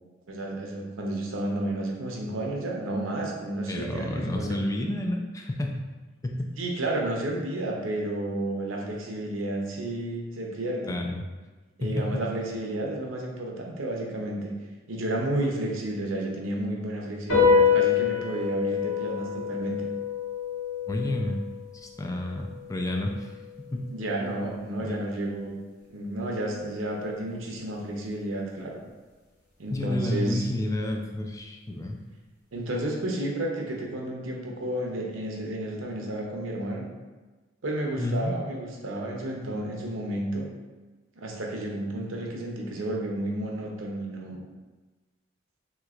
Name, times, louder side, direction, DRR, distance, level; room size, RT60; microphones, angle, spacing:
voice 1, 0.3-4.6 6.6-11.0 11.8-14.5 14.9-19.9 23.9-25.6 25.9-28.8 29.6-30.4 32.5-36.9 37.6-40.5 41.2-44.4, right 1 dB, 90° right, 0 dB, 0.6 m, -31 dB
voice 2, 3.7-5.8 6.2-6.6 10.9-11.2 11.8-12.2 20.9-21.4 21.7-23.3 23.6-23.8 24.8-25.0 29.7-32.0 38.0-38.3, left 1 dB, 15° left, 1 dB, 0.3 m, -30 dB
sound 1, 17.3-24.0, left 6 dB, 80° left, 1.5 m, -27 dB
3.3 x 3.0 x 2.4 m, 1.3 s
head